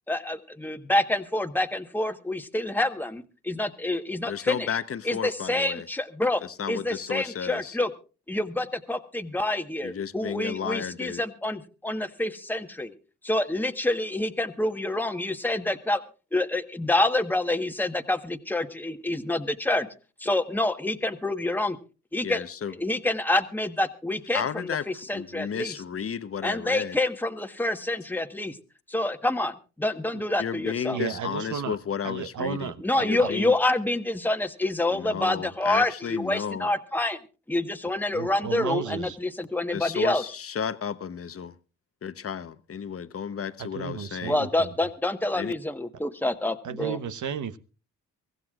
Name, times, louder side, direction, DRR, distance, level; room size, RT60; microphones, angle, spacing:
voice 1, 0.1-4.7 5.0-6.4 6.7-7.9 8.3-12.9 13.2-16.0 16.3-19.9 20.2-21.8 22.1-22.4 22.8-25.7 26.4-28.6 28.9-31.0 32.8-37.2 37.5-40.2 44.3-47.0, left 2 dB, 5° left, 1.3 m, -27 dB
voice 2, 4.3-5.9 6.4-7.8 9.8-11.2 22.2-22.7 24.3-24.9 25.1-27.0 30.4-32.7 33.0-33.5 34.9-36.7 39.7-41.6 42.0-44.4 45.3-45.5, left 7 dB, 40° left, 1.0 m, -33 dB
voice 3, 30.9-31.8 32.0-33.3 38.1-39.2 43.6-44.7 46.6-47.6, right 7 dB, 60° right, 1.1 m, -33 dB
24.0 x 15.0 x 2.4 m
supercardioid pair, 55°, 34 cm